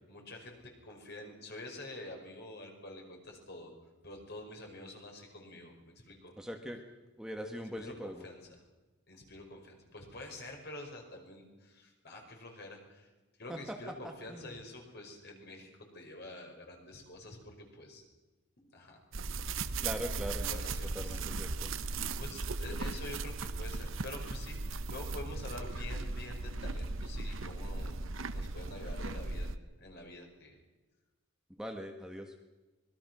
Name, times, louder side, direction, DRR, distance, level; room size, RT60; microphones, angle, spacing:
voice 1, 0.1-3.7 4.0-6.3 7.8-8.6 9.1-13.1 13.4-18.0 18.6-19.0 20.5-21.2 22.2-30.6, left 1 dB, 55° left, 2 dB, 5.4 m, -47 dB
voice 2, 6.4-6.8 7.2-8.3 13.5-13.8 14.3-14.6 19.8-20.6 20.9-21.7 31.6-32.3, equal, 5° right, 3 dB, 1.5 m, -41 dB
sound 1, 19.1-29.6, right 3 dB, 70° right, 0.9 m, -37 dB
25.0 x 21.0 x 6.2 m, 1.2 s
head